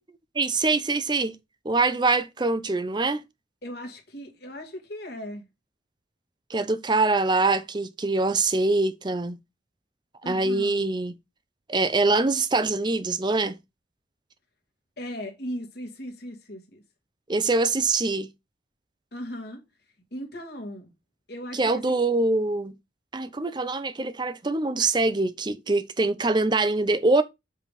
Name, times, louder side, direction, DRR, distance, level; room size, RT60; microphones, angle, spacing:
voice 1, 0.4-1.4 1.6-3.2 6.5-9.4 10.3-11.1 11.7-13.6 17.3-18.3 21.5-22.7 23.1-27.2, right 3 dB, 25° right, 0.5 m, -24 dB
voice 2, 3.6-5.5 10.2-10.8 15.0-16.8 19.1-19.6 20.1-20.9 21.3-22.0, equal, 55° left, 1.8 m, -37 dB
7.4 x 3.4 x 5.2 m
head